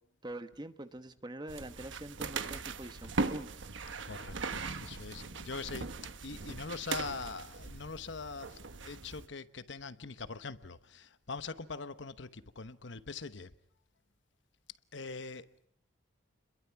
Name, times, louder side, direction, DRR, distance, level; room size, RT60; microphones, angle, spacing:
voice 1, 0.2-3.5, right 1 dB, 20° right, 1.1 m, -44 dB
sound 1, 1.5-9.3, right 3 dB, 70° right, 1.2 m, -39 dB
voice 2, 4.0-5.9 6.2-13.5 14.9-15.7, left 4 dB, 65° left, 1.0 m, -43 dB
30.0 x 22.0 x 5.9 m
head